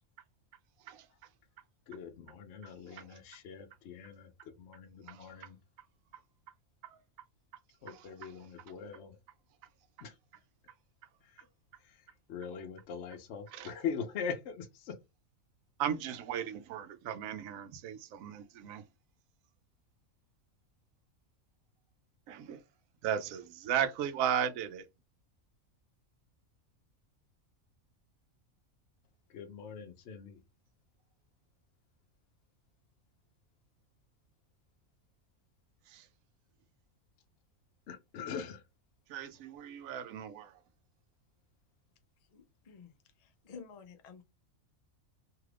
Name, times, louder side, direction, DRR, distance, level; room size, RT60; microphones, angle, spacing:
voice 1, 1.9-5.6 7.8-9.2 10.0-10.2 11.2-11.5 11.8-15.0 29.3-30.4 37.9-38.7, left 6 dB, 65° left, 0.8 m, -42 dB
voice 2, 5.1-5.5 6.1-6.2 6.8-7.0 7.9-8.3 13.5-13.7 15.8-18.9 22.3-22.6 23.0-24.9 35.9-36.1 39.1-40.6, right 9 dB, 80° right, 1.0 m, -36 dB
voice 3, 42.3-42.9 43.2-44.2, left 5 dB, 90° left, 0.3 m, -51 dB
2.8 x 2.4 x 3.2 m
omnidirectional pair, 1.4 m